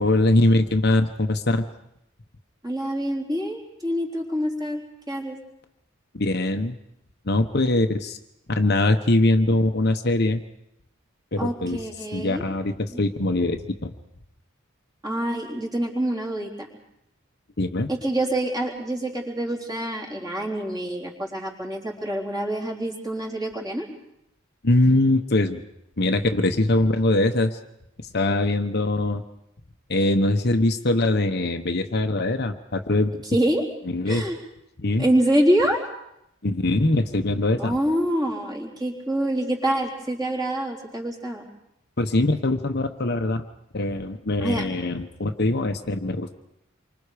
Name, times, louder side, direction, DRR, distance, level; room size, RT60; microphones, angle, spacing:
voice 1, 0.0-1.7 6.1-6.8 7.2-8.2 8.5-10.4 11.3-11.8 12.1-13.9 17.6-17.9 24.6-25.6 26.0-27.6 28.1-29.2 29.9-33.1 33.9-34.2 34.8-35.1 36.4-37.7 42.0-43.4 43.7-46.3, left 2 dB, 50° left, 6 dB, 1.1 m, -22 dB
voice 2, 2.6-4.8 5.1-5.4 11.4-12.4 12.9-13.0 15.0-16.7 17.9-23.9 33.3-33.6 34.1-34.4 35.0-35.8 37.6-41.5 44.4-44.6, right 1 dB, 20° right, 0 dB, 3.8 m, -26 dB
28.0 x 24.5 x 5.1 m, 0.80 s
head